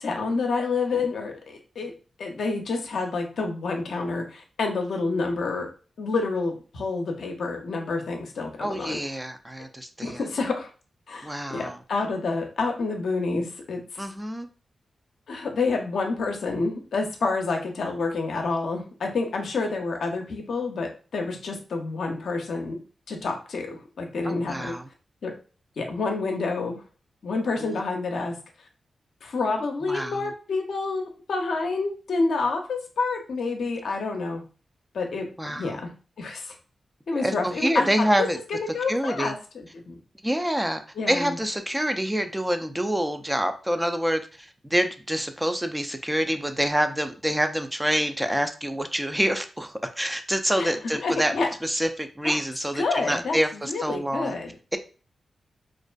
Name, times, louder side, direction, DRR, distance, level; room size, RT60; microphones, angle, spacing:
voice 1, 0.0-1.9 2.2-5.7 6.0-9.0 10.0-10.7 11.1-14.0 15.3-22.8 23.1-24.8 25.2-25.3 25.8-26.8 27.2-28.4 29.2-34.4 34.9-35.9 36.2-36.5 37.1-38.1 38.5-39.4 39.7-40.0 41.0-41.4 50.6-50.7 51.0-51.5 52.2-52.4 52.8-54.5, left 3 dB, 75° left, 2 dB, 0.5 m, -28 dB
voice 2, 8.6-10.3 11.2-11.8 14.0-14.5 24.2-24.9 27.6-27.8 29.9-30.3 35.4-35.8 37.1-38.4 38.9-39.3 40.2-51.3 51.6-54.3, equal, 10° right, 7 dB, 0.4 m, -27 dB
2.4 x 2.4 x 2.2 m, 0.37 s
supercardioid pair, 40°, 0 cm